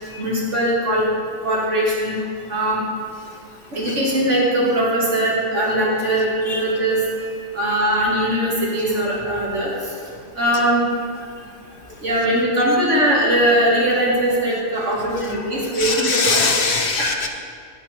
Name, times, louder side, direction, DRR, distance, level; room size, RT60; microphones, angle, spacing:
voice 1, 0.2-1.0 1.4-2.2 2.5-2.8 3.7-7.0 7.5-9.7 10.4-10.8 12.0-16.5 17.0-17.1, right 1 dB, 80° right, -5 dB, 2.6 m, -20 dB
voice 2, 15.8-17.3, left 4 dB, 55° left, 3 dB, 0.9 m, -21 dB
9.6 x 8.3 x 4.4 m, 2.1 s
omnidirectional pair, 1.2 m